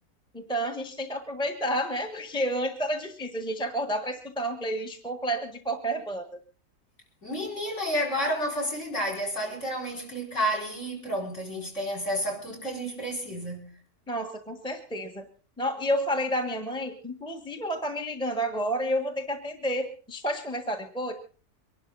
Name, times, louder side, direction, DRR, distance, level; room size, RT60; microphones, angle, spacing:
voice 1, 0.3-6.4 14.1-15.3 15.6-21.1, equal, 5° left, 1.3 m, -30 dB
voice 2, 7.2-13.7, equal, 50° left, 5.3 m, -30 dB
24.5 x 11.5 x 4.0 m
omnidirectional pair, 1.6 m